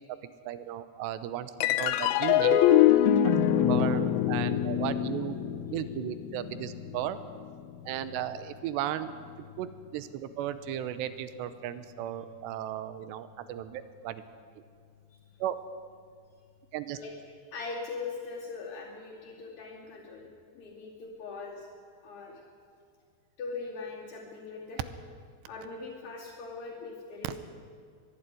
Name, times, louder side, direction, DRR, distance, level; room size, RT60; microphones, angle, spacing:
voice 1, 0.4-1.5 1.8-2.6 3.1-5.4 5.7-7.2 7.9-9.1 9.6-14.2 15.4-15.6 16.7-17.0 27.2-27.4, right 11 dB, 80° right, 12 dB, 2.8 m, -35 dB
sound 1, 1.6-8.3, left 11 dB, 85° left, 2.2 m, -25 dB
voice 2, 17.5-20.3 20.6-21.7 22.0-22.4 23.4-24.8 25.5-27.4, left 4 dB, 50° left, -8 dB, 4.0 m, -40 dB
22.5 x 11.5 x 9.9 m, 2.2 s
omnidirectional pair, 5.3 m